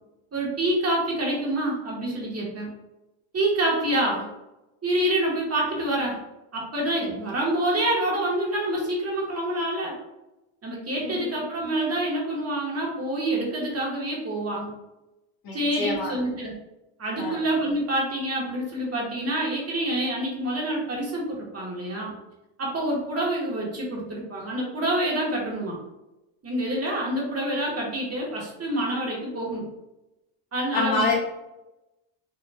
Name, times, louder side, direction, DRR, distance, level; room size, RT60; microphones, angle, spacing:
voice 1, 0.3-2.7 3.3-4.3 4.8-6.2 6.5-9.9 10.6-14.7 15.5-16.5 17.0-22.1 22.6-25.8 26.4-29.6 30.5-31.1, right 1 dB, 30° right, -3 dB, 1.4 m, -27 dB
voice 2, 11.0-11.4 15.4-16.2 17.2-17.4 30.7-31.1, left 3 dB, 45° left, -3 dB, 1.4 m, -27 dB
5.4 x 2.8 x 2.3 m, 0.96 s
cardioid pair, 110°, 50 cm